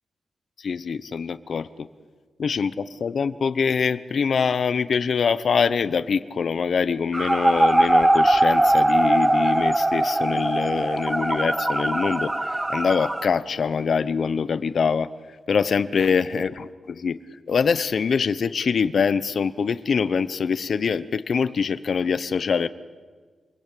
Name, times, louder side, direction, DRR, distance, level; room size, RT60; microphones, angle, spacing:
voice 1, 0.6-1.9 2.4-15.1 15.5-17.2 17.5-22.7, left 6 dB, 60° left, 14 dB, 1.0 m, -24 dB
sound 1, 7.1-13.3, right 1 dB, 15° right, 0.9 m, -21 dB
27.5 x 21.5 x 8.6 m, 1.5 s
wide cardioid pair, 110°, 0 cm